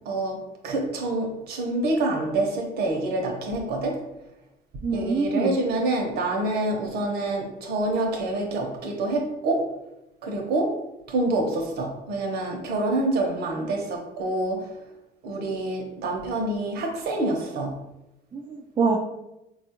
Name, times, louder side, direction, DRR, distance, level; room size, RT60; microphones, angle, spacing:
voice 1, 0.1-4.0 4.9-9.7 10.2-10.8 11.1-14.7 15.2-17.7, right 2 dB, 70° right, 2 dB, 0.8 m, -27 dB
voice 2, 4.8-5.6 18.3-19.0, right 4 dB, 25° right, 0 dB, 0.4 m, -25 dB
4.2 x 2.4 x 2.8 m, 0.91 s
cardioid pair, 110°, 17 cm